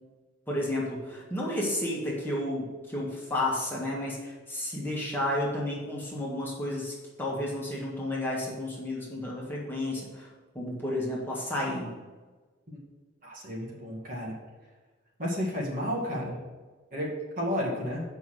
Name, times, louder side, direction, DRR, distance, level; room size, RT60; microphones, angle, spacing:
voice 1, 0.5-10.3 10.5-11.9, left 1 dB, 10° left, -5 dB, 1.7 m, -32 dB
voice 2, 13.2-14.3 15.2-16.4 16.9-18.0, equal, 45° right, -4 dB, 2.1 m, -32 dB
7.2 x 5.5 x 6.4 m, 1.3 s
head